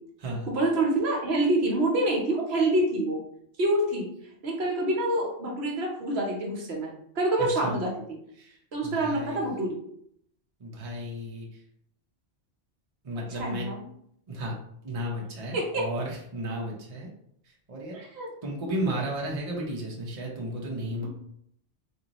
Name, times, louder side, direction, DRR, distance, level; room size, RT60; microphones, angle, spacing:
voice 1, 0.5-3.2 3.6-4.1 4.4-7.9 8.7-9.8 13.4-13.8 15.5-15.8 17.9-18.3, right 1 dB, 65° right, -1 dB, 1.1 m, -26 dB
voice 2, 7.4-7.8 8.4-8.6 8.8-9.4 10.6-11.5 13.0-13.7 14.3-14.5 14.8-17.1 17.7-18.0 18.4-21.1, right 1 dB, 35° right, -2 dB, 0.7 m, -33 dB
3.8 x 2.6 x 2.9 m, 0.70 s
omnidirectional pair, 1.2 m